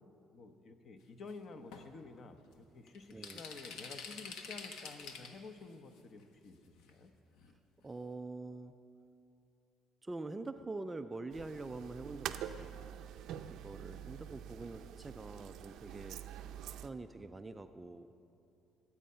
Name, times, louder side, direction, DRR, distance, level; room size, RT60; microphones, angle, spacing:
voice 1, 0.3-7.1 13.8-14.3 16.4-16.7, left 3 dB, 35° left, 8 dB, 0.8 m, -51 dB
sound 1, 1.3-1.4 1.7-1.9 2.5-2.6 2.9-5.5 6.0-6.1 6.9-7.0 7.4-7.5 7.8-7.9, left 5 dB, 85° left, 1.2 m, -47 dB
voice 2, 3.1-3.4 7.8-8.7 10.0-12.7 13.5-18.1, right 3 dB, 15° right, 8 dB, 0.3 m, -45 dB
sound 2, 11.3-16.9, right 10 dB, 65° right, 0.5 m, -46 dB
22.0 x 8.6 x 5.6 m, 2.6 s
cardioid pair, 170°, 0 cm